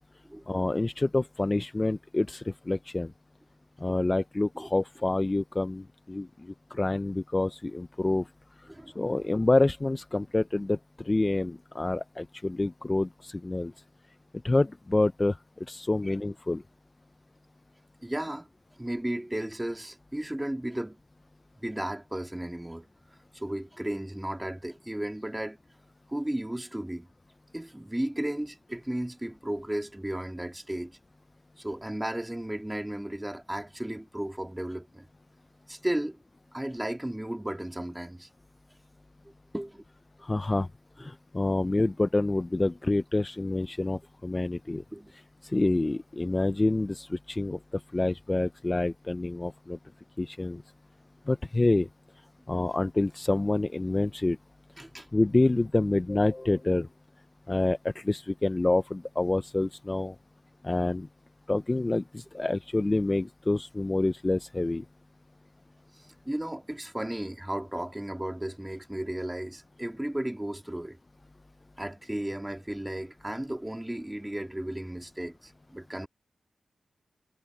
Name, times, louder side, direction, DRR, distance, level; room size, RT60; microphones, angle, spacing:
voice 1, 0.5-3.1 3.8-8.3 9.0-13.7 14.4-15.4 15.7-16.6 40.2-40.7 41.0-44.8 45.1-49.8 50.2-50.6 51.3-51.9 52.5-54.4 55.1-56.9 57.5-60.2 60.6-61.1 61.5-64.8, left 2 dB, 20° left, 0.4 m, -27 dB
voice 2, 8.7-9.3 16.0-16.2 18.0-18.5 18.8-21.0 21.6-22.9 23.3-25.6 26.1-27.1 27.5-31.0 31.6-35.1 35.7-36.2 36.5-38.3 39.5-39.8 44.9-45.1 54.8-55.1 66.0-71.0 71.8-76.1, right 1 dB, 10° right, 3.0 m, -34 dB
wide cardioid pair, 135°, 0 cm